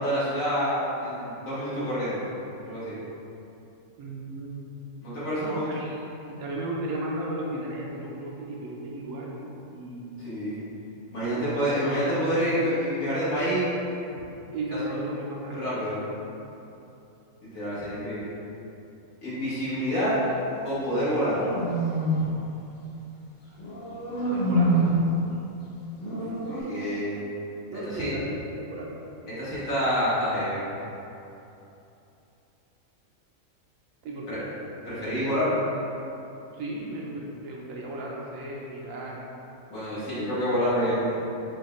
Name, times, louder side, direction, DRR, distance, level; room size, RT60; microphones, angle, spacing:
voice 1, 0.0-2.2 2.7-2.9 5.0-5.6 10.2-10.6 11.1-13.7 15.6-16.0 17.4-18.2 19.2-20.2 20.6-21.5 26.0-27.2 27.9-28.1 29.4-30.6 34.3-34.4 34.9-35.5 39.7-41.2, equal, 80° left, -11 dB, 1.9 m, -27 dB
voice 2, 4.0-4.6 5.4-10.1 11.2-11.5 14.5-15.9 23.5-23.6 24.2-24.9 27.7-29.0 29.3-29.6 34.0-34.4 36.5-39.3 41.2-41.3, right 1 dB, 80° right, -3 dB, 1.0 m, -35 dB
sound 1, 20.7-22.3 23.6-25.1 26.0-26.6, right 1 dB, 40° left, 0.7 m, -26 dB
6.2 x 2.2 x 3.1 m, 2.9 s
omnidirectional pair, 1.4 m